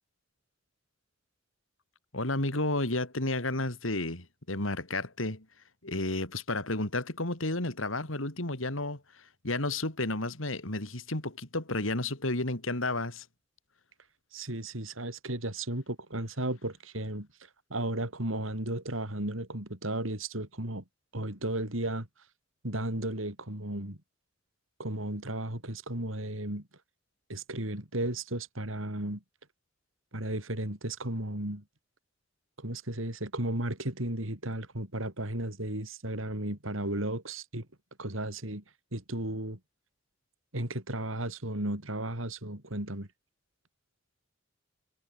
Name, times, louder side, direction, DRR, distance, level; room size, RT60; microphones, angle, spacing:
voice 1, 2.1-5.5 5.8-13.3, left 2 dB, 85° left, 4.3 m, -32 dB
voice 2, 14.3-20.8 21.1-22.1 22.6-24.0 24.8-26.7 27.3-29.2 30.1-31.6 32.6-37.7 38.0-38.6 38.9-39.6 40.5-43.1, right 1 dB, 90° right, 4.6 m, -34 dB
head